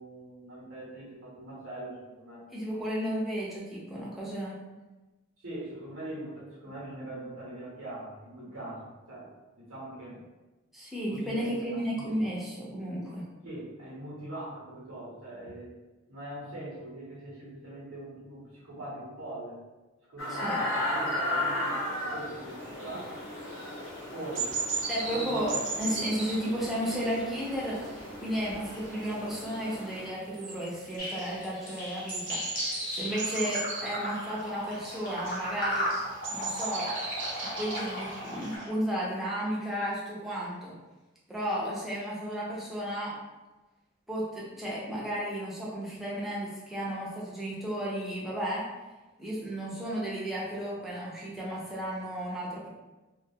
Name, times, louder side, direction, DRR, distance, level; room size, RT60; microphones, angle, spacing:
voice 1, 0.0-2.4 5.4-10.2 11.1-12.2 13.4-15.7 16.1-19.6 20.1-23.3 24.1-24.6 25.1-25.4, right 1 dB, 90° right, -7 dB, 0.8 m, -42 dB
voice 2, 2.5-4.6 10.7-13.3 20.3-20.6 24.9-27.8 28.2-35.9 36.3-36.9 37.4-40.7 41.3-43.2 44.1-48.7 49.2-52.7, equal, ahead, -7 dB, 0.5 m, -33 dB
sound 1, 20.2-30.1, left 1 dB, 80° left, 0.7 m, -35 dB
sound 2, 22.5-38.6, right 3 dB, 60° right, 0.5 m, -39 dB
sound 3, 31.0-38.7, equal, 40° left, 0.7 m, -36 dB
2.2 x 2.2 x 2.7 m, 1.1 s
head